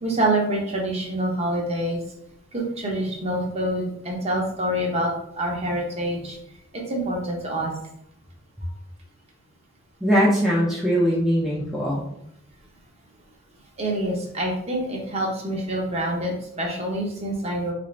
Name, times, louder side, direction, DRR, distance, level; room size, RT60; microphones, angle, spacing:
voice 1, 0.0-2.0 2.5-5.1 5.4-6.4 6.7-7.7 13.8-17.7, right 1 dB, 30° right, -1 dB, 0.8 m, -26 dB
voice 2, 10.0-12.0, equal, ahead, -6 dB, 0.5 m, -21 dB
3.8 x 2.5 x 3.2 m, 0.75 s
head